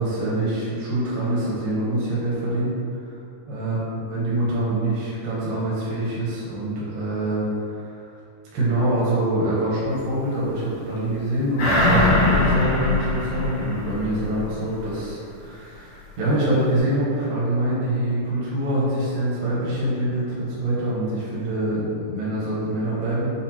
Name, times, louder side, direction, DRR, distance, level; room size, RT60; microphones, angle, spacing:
voice 1, 0.0-2.7 3.0-3.1 3.5-8.1 8.5-23.3, right 1 dB, 80° right, -8 dB, 2.7 m, -25 dB
sound 1, 11.6-14.5 14.9-15.0, left 2 dB, 55° left, 2.6 m, -21 dB
6.9 x 2.5 x 2.8 m, 2.5 s
omnidirectional pair, 3.8 m